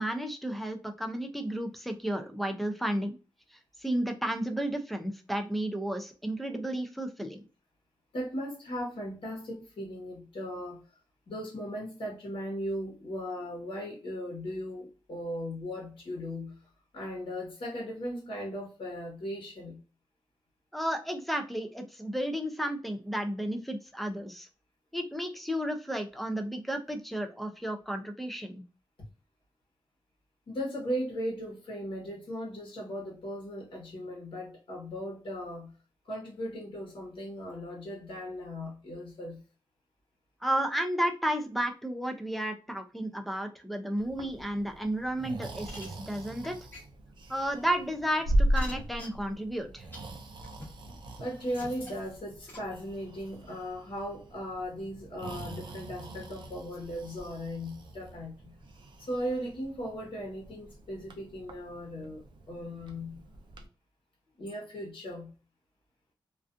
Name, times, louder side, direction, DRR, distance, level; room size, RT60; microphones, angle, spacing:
voice 1, 0.0-3.2 3.5-7.4 20.7-24.5 24.9-28.6 40.4-46.6 47.3-49.9, right 1 dB, ahead, 0.4 m, -32 dB
voice 2, 8.1-10.8 11.3-16.7 16.9-19.8 30.5-35.8 36.0-39.4 51.2-58.5 59.0-63.2 64.4-65.3, equal, 80° left, 1.0 m, -37 dB
Breathing, 44.0-63.7, equal, 65° right, 0.4 m, -38 dB
sound 1, 45.7-45.8 46.4-46.5 46.7-46.8 47.6-47.7 48.5-49.1 49.9-50.0 50.4-50.6 51.5-51.9 52.5-52.6, left 1 dB, 25° left, 1.0 m, -43 dB
2.4 x 2.4 x 2.4 m
wide cardioid pair, 150°, 9 cm